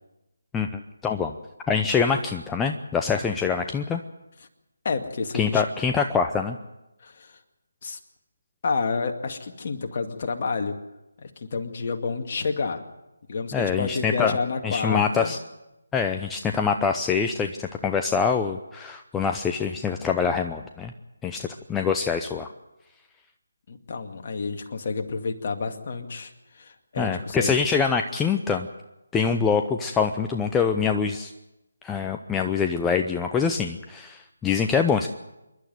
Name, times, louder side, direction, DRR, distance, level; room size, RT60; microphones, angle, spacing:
voice 1, 0.5-1.3 1.7-4.0 5.3-6.6 13.5-14.4 14.6-15.4 15.9-20.9 21.2-22.5 27.0-28.7 29.1-31.3 31.8-35.1, left 6 dB, 10° left, 4 dB, 0.7 m, -25 dB
voice 2, 4.8-5.6 7.0-7.4 7.8-8.0 8.6-10.8 11.2-12.8 13.3-15.3 23.7-27.5, left 4 dB, 40° left, 4 dB, 2.2 m, -29 dB
27.0 x 11.5 x 9.3 m, 0.95 s
figure-of-eight pair, 155°, 0 cm